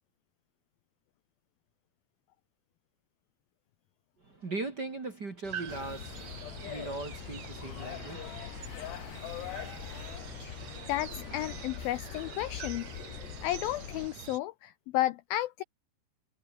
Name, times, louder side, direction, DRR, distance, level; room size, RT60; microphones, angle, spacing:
voice 1, 4.2-8.4, right 3 dB, 30° right, 2.0 m, -39 dB
sound 1, 5.4-14.4, right 8 dB, 50° right, 2.5 m, -45 dB
sound 2, 5.7-14.1, left 14 dB, 70° left, 3.3 m, -43 dB
voice 2, 10.9-15.6, left 15 dB, 85° left, 2.0 m, -33 dB
omnidirectional pair, 5.2 m